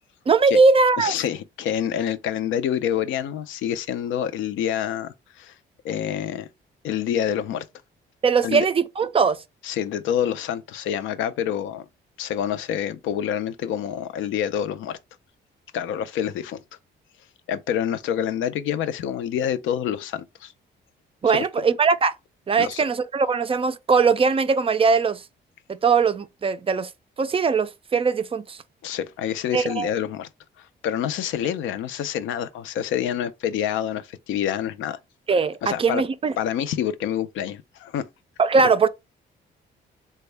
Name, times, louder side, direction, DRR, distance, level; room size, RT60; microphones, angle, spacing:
voice 1, 0.3-1.1 8.2-9.4 21.2-22.1 22.5-25.2 25.7-26.9 27.2-28.6 29.5-29.9 35.3-36.3 38.4-38.9, right 5 dB, 30° right, 0.3 m, -20 dB
voice 2, 1.0-5.5 5.8-6.5 6.8-7.7 8.4-8.7 9.6-11.9 12.2-15.0 15.7-16.6 17.5-20.5 21.3-21.7 22.6-22.8 28.8-30.3 30.6-35.0 35.6-36.0 36.4-38.1, left 9 dB, 80° left, 0.4 m, -27 dB
3.4 x 2.2 x 3.2 m
cardioid pair, 90°, 20 cm